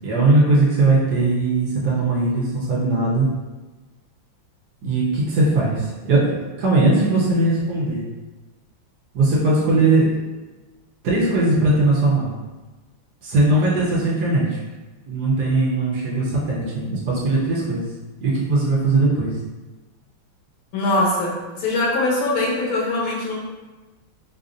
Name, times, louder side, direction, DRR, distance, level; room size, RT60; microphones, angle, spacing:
voice 1, 0.0-3.3 4.8-8.1 9.1-10.2 11.0-12.3 13.2-14.6 15.1-17.9 18.2-19.3, right 2 dB, 65° right, -5 dB, 1.2 m, -19 dB
voice 2, 20.7-21.3 21.6-23.4, left 2 dB, 90° left, -4 dB, 1.8 m, -21 dB
4.9 x 2.5 x 2.5 m, 1.2 s
omnidirectional pair, 2.2 m